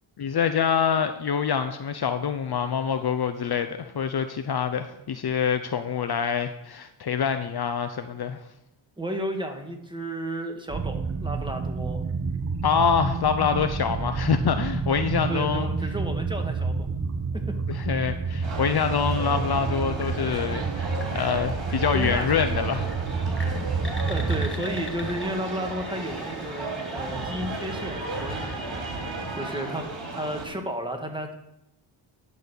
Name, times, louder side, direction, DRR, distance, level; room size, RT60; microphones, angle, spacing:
voice 1, 0.2-8.4 12.6-15.7 17.7-22.9, left 7 dB, 50° left, 9 dB, 0.7 m, -26 dB
voice 2, 9.0-12.0 15.3-16.7 21.9-23.0 24.0-29.9 30.1-31.3, right 1 dB, 10° right, 3 dB, 1.7 m, -33 dB
sound 1, 10.7-24.6, right 4 dB, 30° right, 0.7 m, -29 dB
sound 2, 18.4-30.5, right 2 dB, 65° right, 2.5 m, -34 dB
sound 3, 20.0-29.8, left 2 dB, 25° left, 1.6 m, -43 dB
11.0 x 4.2 x 6.9 m, 0.83 s
cardioid pair, 65°, 48 cm